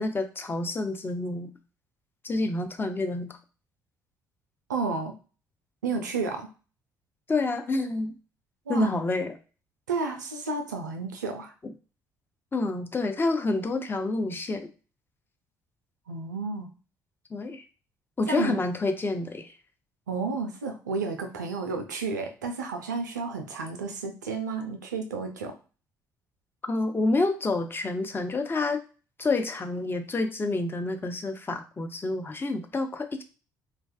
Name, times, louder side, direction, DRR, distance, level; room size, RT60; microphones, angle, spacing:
voice 1, 0.0-1.5 2.2-3.4 7.3-8.1 8.7-9.3 12.5-14.7 17.3-17.6 18.2-19.5 26.6-28.8 29.2-33.2, left 2 dB, 25° left, 7 dB, 0.5 m, -28 dB
voice 2, 4.7-5.1 5.8-6.5 8.7-9.0 9.9-11.5 16.1-16.7 18.3-18.6 20.1-25.6, right 4 dB, 85° right, 5 dB, 0.3 m, -31 dB
2.4 x 2.2 x 2.3 m, 0.35 s
figure-of-eight pair, 50°, 9 cm